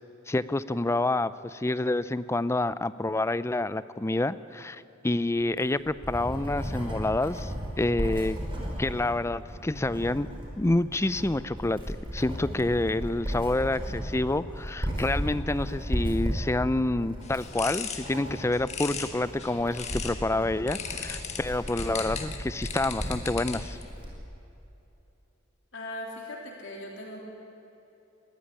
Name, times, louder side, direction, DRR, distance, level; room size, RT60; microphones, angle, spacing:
voice 1, 0.3-8.4 8.8-10.3 10.6-23.8, left 2 dB, 15° left, 16 dB, 0.5 m, -28 dB
Writing, 5.4-24.2, equal, 25° right, 5.6 m, -35 dB
sound 1, 17.2-20.2 20.7-23.8, left 7 dB, 35° left, 1.6 m, -38 dB
voice 2, 25.7-27.2, left 1 dB, 65° left, -1 dB, 3.4 m, -39 dB
20.5 x 16.0 x 10.0 m, 3.0 s
head